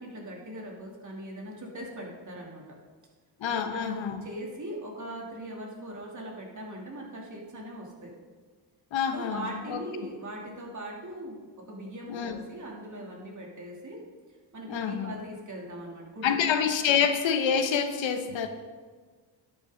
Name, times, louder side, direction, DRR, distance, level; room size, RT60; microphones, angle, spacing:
voice 1, 0.0-2.8 3.5-8.1 9.1-14.0 14.5-16.3, right 1 dB, 40° right, -2 dB, 3.0 m, -40 dB
voice 2, 3.4-4.2 8.9-9.8 12.1-12.4 14.7-15.1 16.2-18.5, left 7 dB, 80° left, 7 dB, 1.1 m, -27 dB
11.5 x 8.7 x 3.9 m, 1.5 s
cardioid pair, 85°, 45 cm